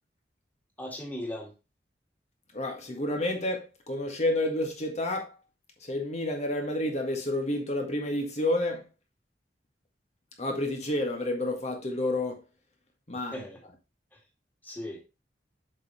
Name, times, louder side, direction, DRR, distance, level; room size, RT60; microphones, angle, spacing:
voice 1, 0.8-1.5 13.1-13.6 14.6-15.0, left 1 dB, 10° left, 2.4 m, -38 dB
voice 2, 2.5-5.3 5.8-8.8 10.4-12.4 13.1-13.4, left 1 dB, 40° left, 1.8 m, -30 dB
7.4 x 5.6 x 3.1 m
head